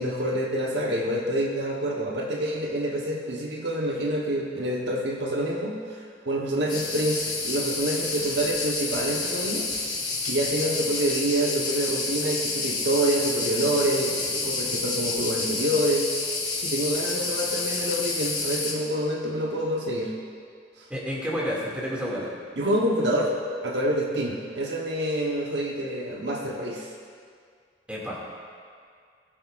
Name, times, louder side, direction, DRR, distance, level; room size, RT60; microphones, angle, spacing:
voice 1, 0.0-9.7 10.2-16.0 16.6-20.1 20.8-20.9 22.6-23.3 23.6-26.9, right 1 dB, 65° right, -2 dB, 1.1 m, -27 dB
sound 1, 6.7-18.7, left 3 dB, 25° left, 2.8 m, -29 dB
voice 2, 20.9-22.3 27.9-28.2, equal, 5° right, -6 dB, 2.3 m, -30 dB
19.0 x 7.5 x 2.5 m, 2.2 s
head